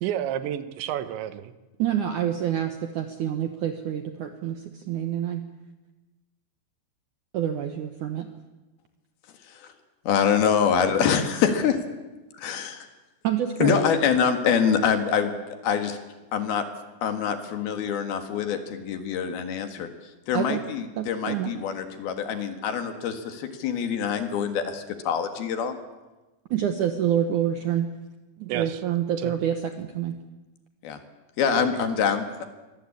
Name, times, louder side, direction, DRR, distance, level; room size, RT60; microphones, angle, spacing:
voice 1, 0.0-1.5 28.5-28.8 29.2-29.3 31.5-31.9, right 11 dB, 85° right, 12 dB, 3.5 m, -31 dB
voice 2, 1.8-5.4 7.3-8.3 13.2-13.8 20.3-20.6 21.0-21.5 26.5-27.9 28.4-30.2, right 10 dB, 70° right, 7 dB, 1.9 m, -27 dB
voice 3, 10.1-11.8 12.4-12.9 13.6-15.4 15.6-16.0 16.3-16.6 17.0-19.9 20.3-25.8 30.8-31.0 31.4-32.4, left 7 dB, 65° left, 7 dB, 3.4 m, -25 dB
24.0 x 19.0 x 8.6 m, 1.1 s
omnidirectional pair, 5.0 m